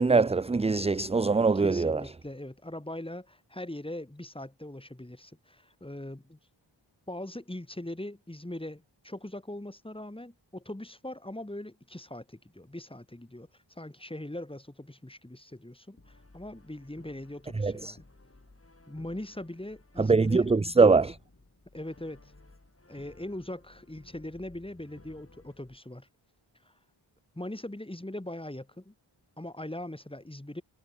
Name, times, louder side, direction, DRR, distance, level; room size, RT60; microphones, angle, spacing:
voice 1, 0.0-2.0 17.6-17.9 20.0-21.2, right 4 dB, 15° right, 0.4 m, -23 dB
voice 2, 1.5-6.4 7.1-13.5 13.8-18.0 18.9-20.6 21.7-22.3 22.9-26.1 27.3-28.9 29.4-30.6, left 1 dB, 10° left, 2.9 m, -41 dB
Brass instrument, 16.0-25.8, left 2 dB, 30° left, 6.4 m, -57 dB
wide cardioid pair, 60°, 47 cm